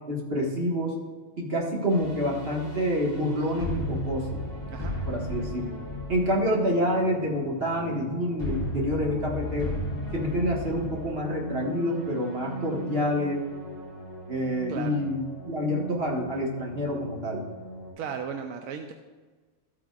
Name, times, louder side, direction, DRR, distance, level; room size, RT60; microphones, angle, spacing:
voice 1, 0.1-0.9 1.4-4.4 5.1-5.6 6.1-9.8 10.1-13.4 14.3-17.4, equal, 45° right, -2 dB, 1.7 m, -27 dB
sound 1, 1.9-17.9, equal, 15° left, 3.3 m, -36 dB
voice 2, 18.0-18.9, right 7 dB, 80° right, 5 dB, 1.0 m, -35 dB
13.0 x 8.7 x 2.4 m, 1.4 s
omnidirectional pair, 1.4 m